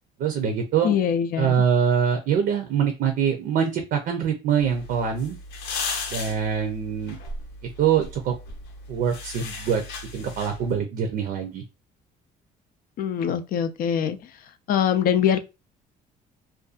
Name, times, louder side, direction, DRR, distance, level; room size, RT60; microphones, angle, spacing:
voice 1, 0.2-1.0 1.4-5.4 6.1-7.2 7.8-8.3 8.9-9.8 10.1-11.6, right 7 dB, 65° right, 0.6 m, -24 dB
voice 2, 0.8-1.5 13.0-14.2 14.7-15.4, left 8 dB, 60° left, 0.4 m, -23 dB
sound 1, 4.6-10.8, left 3 dB, 90° left, 0.7 m, -36 dB
2.6 x 2.3 x 2.4 m
cardioid pair, 110°, 17 cm